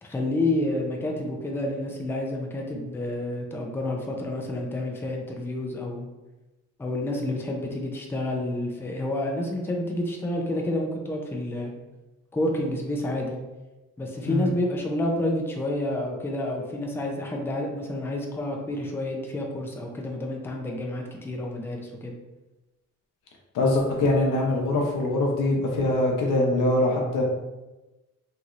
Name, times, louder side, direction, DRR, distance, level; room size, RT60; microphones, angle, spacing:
voice 1, 0.0-6.1 6.8-11.7 12.3-13.4 14.0-22.1, left 1 dB, 10° left, 1 dB, 0.4 m, -29 dB
voice 2, 23.5-27.2, left 2 dB, 85° left, 0 dB, 0.7 m, -23 dB
3.0 x 2.7 x 2.4 m, 1.1 s
cardioid pair, 105°, 30 cm